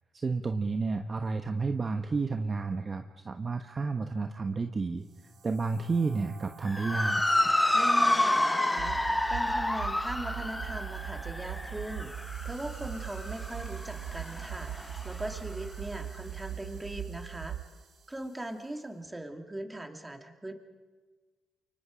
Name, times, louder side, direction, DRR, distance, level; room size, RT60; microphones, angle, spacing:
voice 1, 0.1-5.0 5.4-7.2, right 4 dB, 35° right, 6 dB, 1.1 m, -31 dB
sound 1, 5.1-18.5, right 6 dB, 65° right, 3.3 m, -49 dB
Motor vehicle (road) / Siren, 6.7-15.2, left 1 dB, 10° left, 1.3 m, -29 dB
voice 2, 7.7-17.6 18.1-20.5, right 1 dB, 15° right, 5 dB, 2.3 m, -40 dB
sound 2, 8.8-17.6, right 11 dB, 85° right, 0.9 m, -40 dB
29.0 x 24.0 x 5.1 m, 1.4 s
cardioid pair, 90°, 0 cm